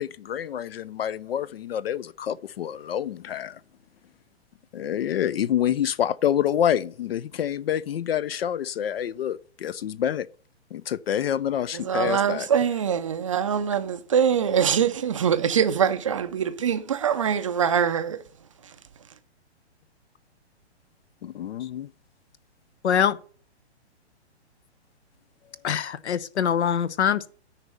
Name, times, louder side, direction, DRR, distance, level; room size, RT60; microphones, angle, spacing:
voice 1, 0.0-3.6 4.7-10.3 10.7-12.5 21.2-21.9, left 10 dB, 60° left, 0.5 m, -27 dB
voice 2, 11.8-18.2, right 8 dB, 30° right, 0.4 m, -23 dB
voice 3, 22.8-23.2 25.6-27.3, left 8 dB, 75° left, 0.9 m, -23 dB
9.9 x 4.1 x 6.9 m
hypercardioid pair, 160°, 34 cm